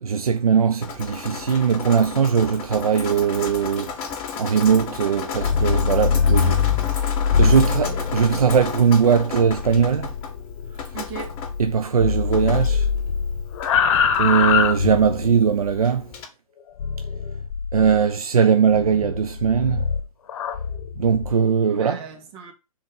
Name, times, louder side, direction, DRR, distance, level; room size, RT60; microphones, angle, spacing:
voice 1, 0.0-3.9 4.4-6.6 6.9-10.1 11.6-12.9 14.2-16.1 17.7-19.9 21.0-22.0, right 7 dB, 85° right, 0.7 m, -20 dB
Drip, 0.8-16.3, left 6 dB, 30° left, 2.0 m, -34 dB
sound 1, 5.3-11.7 12.0-15.4 16.8-18.0 18.7-21.3, left 6 dB, 55° left, 1.1 m, -23 dB
voice 2, 7.4-8.1 10.9-11.4 21.7-22.5, right 7 dB, 45° right, 2.5 m, -37 dB
5.9 x 4.2 x 5.4 m
hypercardioid pair, 125°, 18 cm